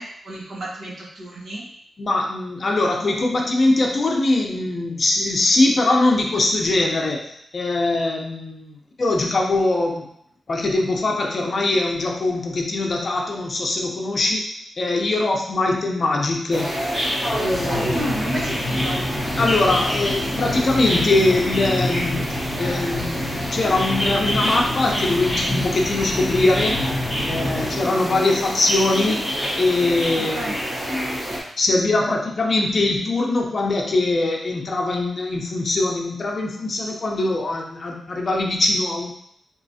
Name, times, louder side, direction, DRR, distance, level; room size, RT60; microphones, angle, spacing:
voice 1, 0.0-1.6 17.9-19.0 30.3-30.6, right 1 dB, 55° right, -4 dB, 1.1 m, -31 dB
voice 2, 2.0-10.1 10.5-14.4 14.8-16.7 17.4-18.0 19.4-26.8 27.2-30.6 31.6-39.1, left 2 dB, 45° left, 0 dB, 0.7 m, -22 dB
sound 1, 16.5-31.4, equal, 20° right, 1.1 m, -25 dB
4.5 x 3.1 x 2.7 m, 0.69 s
wide cardioid pair, 125°, 0 cm